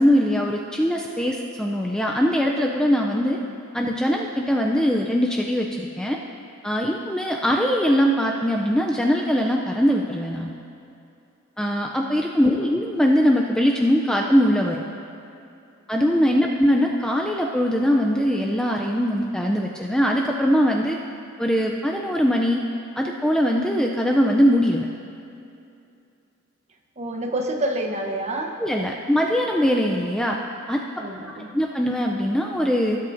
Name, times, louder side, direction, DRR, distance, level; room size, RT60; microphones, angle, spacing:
voice 1, 0.0-3.4 3.7-6.2 6.6-10.5 11.6-14.8 15.9-21.0 21.4-22.6 23.0-24.9 28.6-30.4 30.7-30.8 31.4-33.0, equal, 5° left, 0 dB, 0.4 m, -21 dB
voice 2, 27.0-28.6 31.0-31.5, right 1 dB, 30° right, 2 dB, 0.8 m, -28 dB
17.5 x 8.3 x 2.6 m, 2.6 s
head